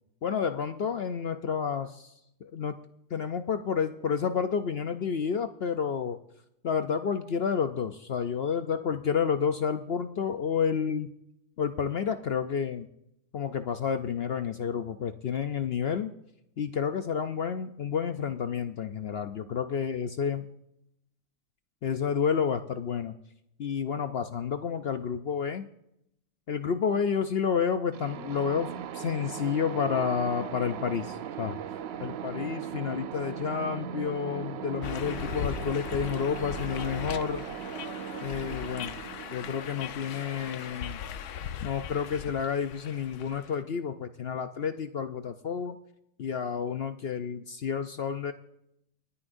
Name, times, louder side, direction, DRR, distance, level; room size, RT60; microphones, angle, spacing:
voice 1, 0.2-2.1 2.4-2.7 3.1-6.2 6.6-11.1 11.6-12.9 13.3-16.1 16.6-20.5 21.8-23.1 23.6-25.7 26.5-31.6 32.0-37.4 38.2-39.0 39.3-41.0 41.6-45.8 46.2-48.3, left 7 dB, 60° left, 9 dB, 0.6 m, -30 dB
sound 1, 27.9-41.6, right 8 dB, 65° right, 0.6 m, -39 dB
sound 2, 34.8-43.6, left 8 dB, 80° left, 1.3 m, -39 dB
29.0 x 9.9 x 2.6 m, 0.80 s
omnidirectional pair, 1.6 m